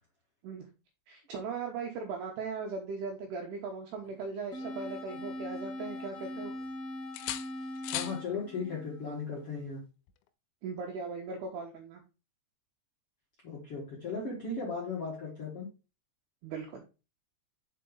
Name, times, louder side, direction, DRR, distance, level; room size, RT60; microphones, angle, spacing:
voice 1, 1.1-6.5 10.6-12.0 16.4-16.8, right 4 dB, 80° right, 2 dB, 2.5 m, -38 dB
sound 1, 4.0-5.6 5.9-6.7 7.1-8.2 10.1-10.3, left 13 dB, 90° left, 3.2 m, -42 dB
sound 2, 4.5-9.6, left 1 dB, 20° left, 2.9 m, -41 dB
voice 2, 7.9-9.8 13.4-15.7, left 4 dB, 70° left, -4 dB, 1.3 m, -37 dB
6.6 x 4.7 x 3.8 m, 0.30 s
omnidirectional pair, 5.7 m